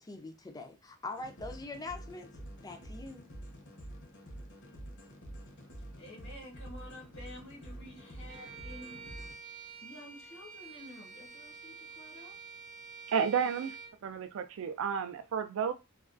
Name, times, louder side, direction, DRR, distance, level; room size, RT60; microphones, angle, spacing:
voice 1, 0.1-2.3 2.6-3.3, left 3 dB, 15° left, 0.3 m, -43 dB
sound 1, 1.1-9.3, right 1 dB, 55° left, 0.6 m, -47 dB
voice 2, 6.0-9.0 9.8-12.3, left 1 dB, 85° left, 1.0 m, -50 dB
Bowed string instrument, 8.3-14.0, right 5 dB, 35° right, 0.7 m, -48 dB
voice 3, 13.1-13.8 14.0-15.7, right 7 dB, 65° right, 0.4 m, -31 dB
2.3 x 2.2 x 2.4 m
head